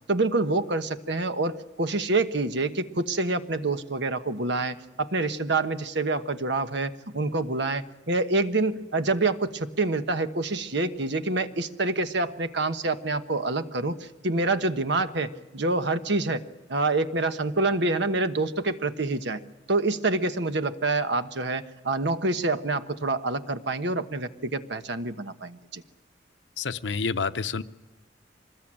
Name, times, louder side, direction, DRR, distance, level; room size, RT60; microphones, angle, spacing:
voice 1, 0.1-19.4 19.7-25.8, right 2 dB, 70° right, 9 dB, 1.3 m, -27 dB
voice 2, 26.6-27.6, left 5 dB, 70° left, 12 dB, 0.8 m, -28 dB
25.0 x 20.5 x 8.9 m, 1.1 s
head